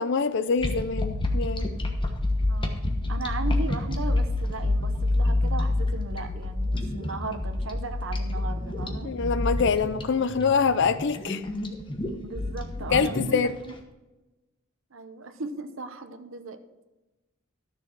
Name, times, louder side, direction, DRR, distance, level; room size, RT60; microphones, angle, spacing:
voice 1, 0.0-1.7 9.0-11.4 12.9-13.5, left 5 dB, 60° left, 0.5 m, -25 dB
sound 1, 0.6-13.7, left 2 dB, 25° left, 1.1 m, -28 dB
voice 2, 2.5-9.1 12.2-13.7 14.9-16.6, right 3 dB, 70° right, 0.9 m, -37 dB
13.0 x 6.9 x 4.6 m
head